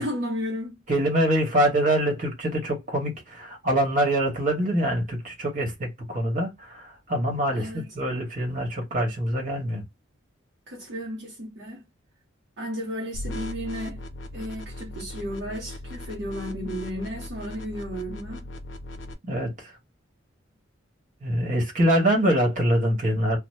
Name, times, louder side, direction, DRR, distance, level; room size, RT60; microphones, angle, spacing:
voice 1, 0.0-0.8 7.5-7.9 10.7-11.8 12.6-14.0 14.3-18.5, equal, 60° right, 0.6 m, -33 dB
voice 2, 0.9-9.8 19.3-19.7 21.2-23.4, right 1 dB, 40° right, 1.1 m, -24 dB
sound 1, 13.1-19.1, left 1 dB, 70° left, 0.5 m, -38 dB
2.6 x 2.0 x 3.1 m
head